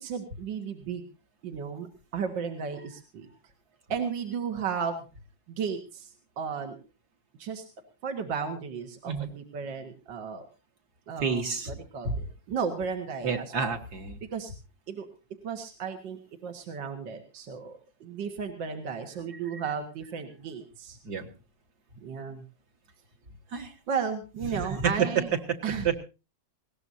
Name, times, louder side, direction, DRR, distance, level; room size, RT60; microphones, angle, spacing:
voice 1, 0.0-1.0 1.4-1.9 2.1-3.3 3.9-5.0 5.6-6.1 6.4-6.8 7.4-7.6 8.0-10.4 11.1-13.7 14.3-14.5 14.9-15.1 15.4-21.0 22.0-22.4 23.9-25.3 25.6-26.0, right 6 dB, 70° right, 5 dB, 2.3 m, -34 dB
voice 2, 11.2-11.7 12.0-12.2 13.2-14.2 21.0-21.3 23.5-23.7 24.5-25.6 25.8-26.0, right 6 dB, 55° right, 5 dB, 2.2 m, -29 dB
20.0 x 18.0 x 2.7 m, 0.30 s
omnidirectional pair, 2.1 m